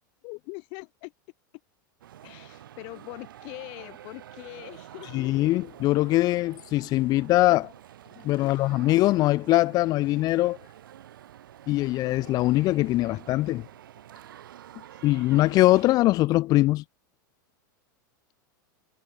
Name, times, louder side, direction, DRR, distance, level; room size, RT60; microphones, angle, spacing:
voice 1, 0.2-1.1 2.2-5.3 8.4-9.1 14.9-15.0, left 36 dB, 55° left, 5.8 m, -43 dB
sound 1, 2.0-16.0, right 11 dB, 85° right, 4.4 m, -48 dB
voice 2, 5.1-7.7 8.2-10.6 11.7-13.6 15.0-16.8, left 17 dB, 35° left, 0.3 m, -22 dB
hypercardioid pair, 120°, 11 cm